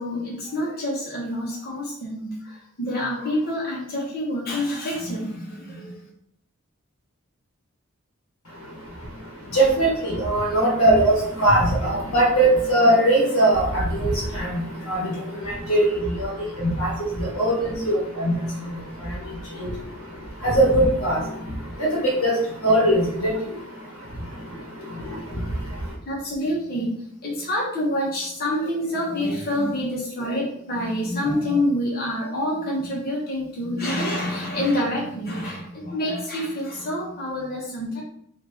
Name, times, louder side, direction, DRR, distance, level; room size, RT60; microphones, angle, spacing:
voice 1, 0.0-6.0 26.0-26.9 27.2-38.0, left 1 dB, 45° left, -6 dB, 1.2 m, -27 dB
voice 2, 9.5-11.1 11.4-15.0 15.7-15.9 16.2-16.3 16.6-16.9 17.2-18.3 19.6-19.7 20.4-21.2 22.2-22.3 22.6-23.3, right 1 dB, 75° left, -3 dB, 1.6 m, -19 dB
3.4 x 2.9 x 4.5 m, 0.70 s
head